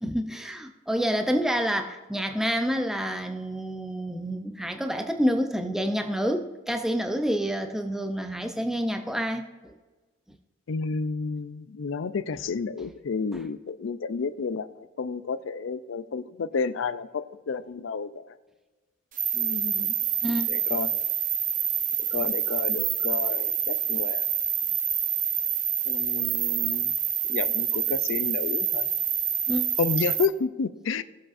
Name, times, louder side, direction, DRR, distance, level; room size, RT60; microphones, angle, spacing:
voice 1, 0.0-9.7 12.8-12.9 13.3-13.5 20.2-20.5 29.5-29.7, equal, ahead, 5 dB, 0.5 m, -28 dB
voice 2, 10.7-14.7 15.0-18.1 19.3-20.0 20.5-20.9 22.1-24.2 25.9-26.9 27.3-28.9 29.8-31.0, left 5 dB, 75° left, 14 dB, 0.4 m, -30 dB
sound 1, 19.1-30.3, right 9 dB, 40° right, 0.6 m, -27 dB
16.5 x 7.4 x 2.5 m, 1.3 s
head